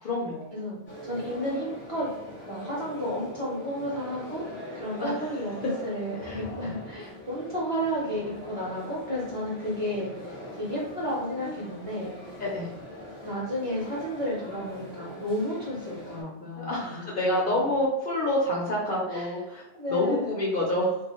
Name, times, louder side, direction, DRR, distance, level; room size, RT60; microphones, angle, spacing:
voice 1, 0.0-0.5 5.0-5.1 6.2-6.7 12.4-12.7 16.6-21.0, left 1 dB, 55° left, -4 dB, 0.7 m, -28 dB
voice 2, 0.5-2.1 2.4-4.4 4.7-12.1 13.2-17.6 19.1-19.3 19.7-20.2, equal, 35° right, -7 dB, 0.7 m, -32 dB
sound 1, 0.9-16.2, left 1 dB, 15° left, 0.6 m, -42 dB
2.3 x 2.3 x 2.9 m, 0.87 s
omnidirectional pair, 1.2 m